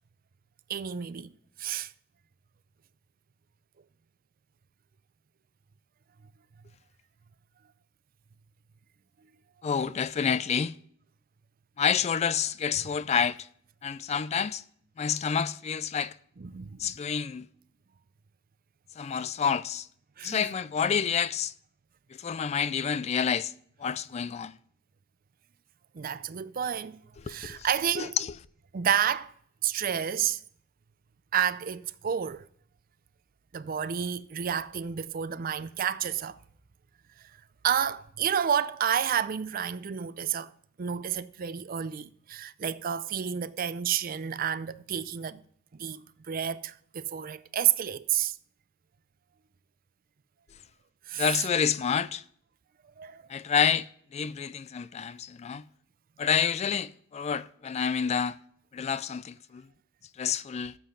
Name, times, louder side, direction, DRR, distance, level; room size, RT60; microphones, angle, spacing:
voice 1, 0.7-1.3 1.6-1.9 16.4-16.9 20.2-20.5 25.9-27.0 27.3-28.2 28.7-29.3 29.6-30.4 31.3-32.5 33.5-36.4 37.6-40.5 40.8-45.4 45.8-48.3 51.1-51.4 53.0-53.2, right 8 dB, 45° right, 0.5 m, -30 dB
voice 2, 9.6-10.7 11.8-13.4 13.8-14.6 15.0-16.1 16.8-17.5 19.0-19.9 20.2-21.5 22.1-23.5 23.8-24.5 27.3-27.7 28.0-28.3 51.2-52.2 53.3-55.6 56.2-58.4 58.7-59.6 60.2-60.8, left 7 dB, 35° left, 0.3 m, -28 dB
13.0 x 7.2 x 3.9 m
head